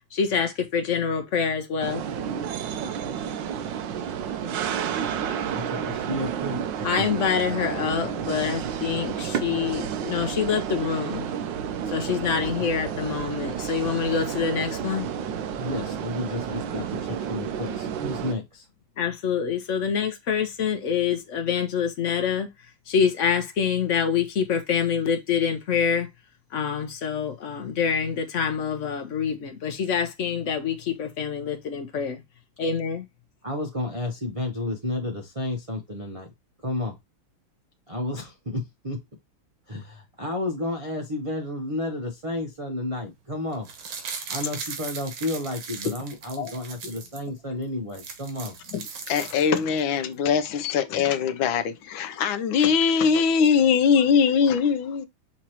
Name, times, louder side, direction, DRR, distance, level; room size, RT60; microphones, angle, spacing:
voice 1, 0.1-2.0 6.8-11.3 11.9-15.1 19.0-22.5 22.9-26.1 26.5-32.2 32.6-33.1, left 7 dB, 60° left, 0.8 m, -26 dB
sound 1, 1.8-18.3, right 8 dB, 70° right, 1.3 m, -31 dB
voice 2, 5.5-7.1 15.6-18.7 33.4-36.3 36.6-37.0 37.9-39.0 39.7-43.7 44.3-48.5, left 1 dB, 50° right, 0.3 m, -31 dB
sound 2, 43.5-47.2 47.6-47.7 47.9-49.8 50.1-50.2, right 6 dB, 90° right, 2.0 m, -38 dB
voice 3, 49.1-55.1, left 6 dB, 80° left, 1.4 m, -22 dB
5.9 x 3.0 x 2.9 m
omnidirectional pair, 2.2 m